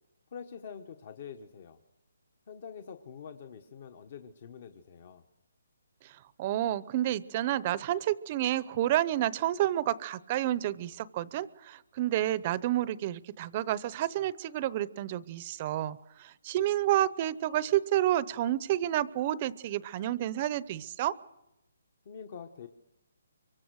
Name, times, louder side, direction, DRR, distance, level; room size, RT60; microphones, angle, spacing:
voice 1, 0.3-1.8 2.5-5.2 22.0-22.7, left 7 dB, 45° left, 7 dB, 1.3 m, -45 dB
voice 2, 6.4-21.2, right 13 dB, 30° right, 18 dB, 0.8 m, -30 dB
24.5 x 24.0 x 6.4 m, 0.89 s
hypercardioid pair, 160°, 0 cm